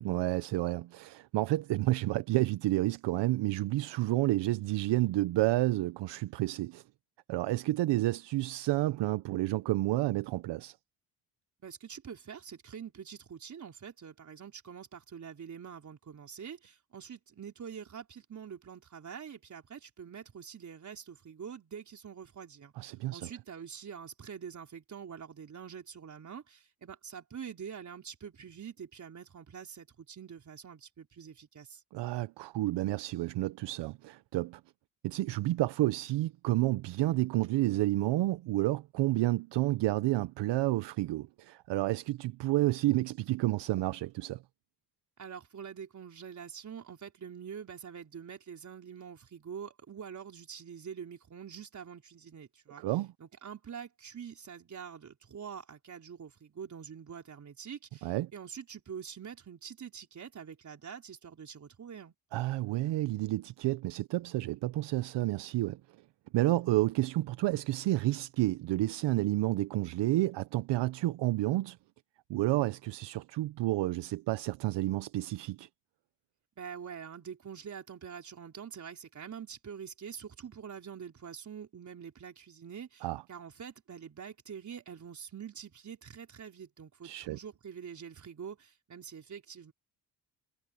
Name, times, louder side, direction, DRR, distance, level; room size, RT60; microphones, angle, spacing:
voice 1, 0.0-6.8 7.3-10.7 22.8-23.3 31.9-34.6 35.0-44.4 52.8-53.1 58.0-58.3 62.3-65.8 66.3-71.8 72.3-75.7 83.0-83.2 87.0-87.4, right 17 dB, 75° right, 0.7 m, -30 dB
voice 2, 11.6-31.8 45.2-52.8 53.2-62.1 76.6-89.7, right 7 dB, 40° right, 4.4 m, -45 dB
cardioid pair, 120°, 43 cm